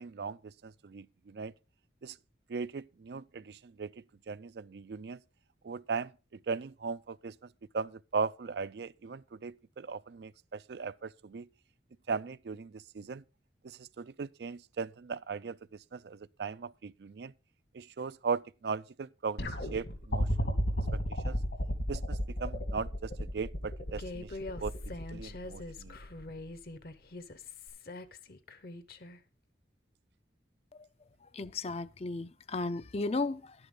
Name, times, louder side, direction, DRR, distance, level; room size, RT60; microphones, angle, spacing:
voice 1, 0.0-1.5 2.0-2.2 2.5-5.2 5.6-7.3 7.7-11.5 12.1-13.2 13.6-17.3 17.7-20.5 20.9-21.4 21.9-24.8 25.1-26.0, right 5 dB, 65° right, 0.4 m, -38 dB
sound 1, 19.4-26.5 27.7-27.8, equal, 80° left, 2.5 m, -33 dB
Human voice, 24.0-29.2, left 2 dB, 55° left, 0.9 m, -44 dB
voice 2, 31.3-33.5, left 3 dB, 35° left, 0.4 m, -34 dB
11.5 x 9.8 x 3.8 m
head